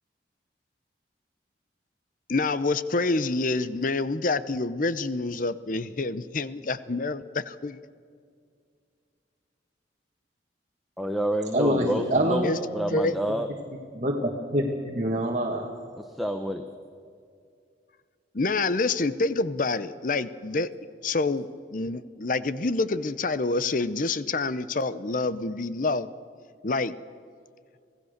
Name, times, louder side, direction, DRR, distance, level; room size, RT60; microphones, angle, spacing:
voice 1, 2.3-7.8 12.4-12.6 12.9-13.2 18.3-20.7 21.0-26.1 26.6-26.9, left 3 dB, 45° left, 15 dB, 0.7 m, -27 dB
voice 2, 11.0-12.5 12.7-13.5 16.0-16.7, equal, ahead, 5 dB, 0.9 m, -28 dB
voice 3, 11.5-12.4 12.8-13.0 13.9-15.7, right 1 dB, 40° right, -1 dB, 1.9 m, -26 dB
26.5 x 17.0 x 6.6 m, 2.3 s
head